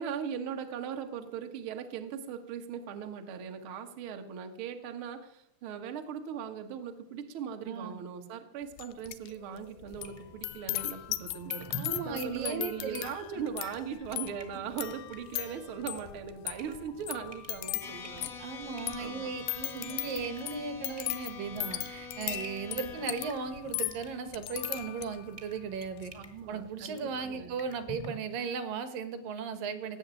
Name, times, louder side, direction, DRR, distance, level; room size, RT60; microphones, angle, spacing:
voice 1, 0.0-11.7 12.0-18.6 19.0-19.3 22.7-23.0 26.1-27.5, right 7 dB, 85° right, 5 dB, 1.1 m, -39 dB
voice 2, 7.6-8.0 11.8-13.0 13.4-13.5 18.4-26.1 26.5-30.0, right 5 dB, 70° right, 10 dB, 2.3 m, -37 dB
sound 1, 8.8-9.3 9.6-25.3 25.7-26.1, left 17 dB, 80° left, 2.0 m, -38 dB
sound 2, 9.9-28.1, right 1 dB, 25° right, 0.6 m, -51 dB
sound 3, 17.8-23.3, left 4 dB, 60° left, 0.8 m, -45 dB
18.0 x 7.1 x 8.9 m, 0.72 s
omnidirectional pair, 5.0 m